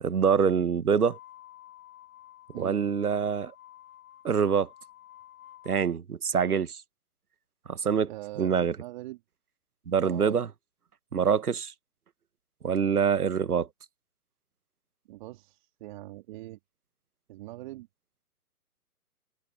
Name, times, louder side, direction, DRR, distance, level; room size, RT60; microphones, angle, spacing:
voice 1, 0.0-1.2 2.6-3.5 4.2-4.7 5.6-6.8 7.7-8.1 8.4-8.8 9.9-10.5 11.1-11.7 12.6-13.7, right 6 dB, 75° right, 1.5 m, -25 dB
sound 1, 0.9-5.9, left 13 dB, 65° left, 3.4 m, -52 dB
voice 2, 2.5-2.9 8.1-9.2 10.0-10.4 15.1-16.6 17.3-17.9, right 17 dB, 30° right, 2.5 m, -42 dB
figure-of-eight pair, 140°, 45 cm